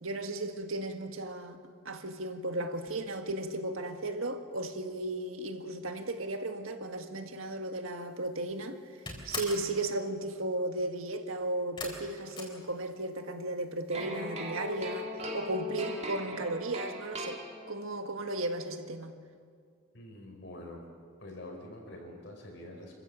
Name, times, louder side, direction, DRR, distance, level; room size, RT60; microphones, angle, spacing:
voice 1, 0.0-1.6 1.9-8.8 9.3-17.4 17.7-19.1, right 2 dB, 85° right, 6 dB, 1.7 m, -35 dB
sound 1, 8.0-8.4 8.7-9.7 11.8-13.3 13.5-14.2 14.5-14.6 14.9-15.0, left 3 dB, 25° left, 4.1 m, -41 dB
sound 2, 13.9-18.0, left 1 dB, 30° right, 2.1 m, -39 dB
voice 2, 19.9-20.8 21.2-22.9, left 1 dB, 60° left, 1 dB, 5.1 m, -46 dB
27.0 x 15.0 x 7.7 m, 2.1 s
head